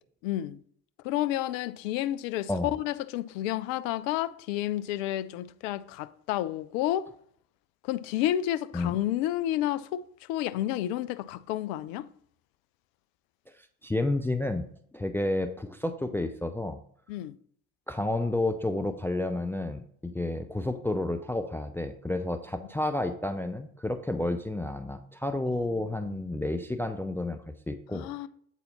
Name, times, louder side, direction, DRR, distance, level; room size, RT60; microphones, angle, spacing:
voice 1, 0.2-0.6 1.0-7.1 7.9-10.0 10.3-12.1 17.1-17.4 26.0-26.3 27.9-28.3, left 13 dB, 60° left, 0.5 m, -30 dB
voice 2, 13.8-14.6 14.9-16.8 17.9-27.4 27.7-28.1, left 2 dB, 5° left, 0.4 m, -30 dB
8.1 x 4.1 x 4.1 m
figure-of-eight pair, 60°, 44 cm